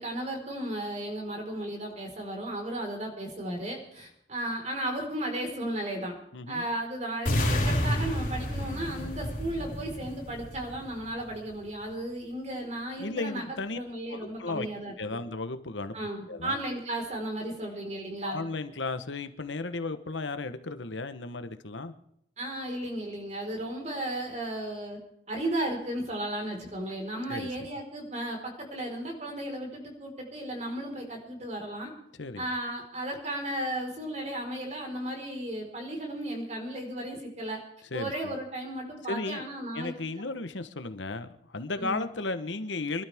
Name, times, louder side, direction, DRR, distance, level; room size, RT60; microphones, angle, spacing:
voice 1, 0.0-6.1 6.5-15.2 15.9-18.4 22.4-25.0 25.3-31.9 32.4-37.6 37.9-39.9 41.8-42.0, right 1 dB, 35° right, 2 dB, 4.5 m, -35 dB
voice 2, 6.3-6.7 13.0-13.8 14.1-16.6 18.2-21.9 27.3-27.5 32.2-32.5 37.9-38.3 39.1-39.4 39.7-43.0, left 3 dB, 80° left, 10 dB, 1.1 m, -35 dB
sound 1, 7.3-11.3, equal, 45° left, 3.8 m, -30 dB
26.0 x 12.0 x 3.6 m, 0.73 s
head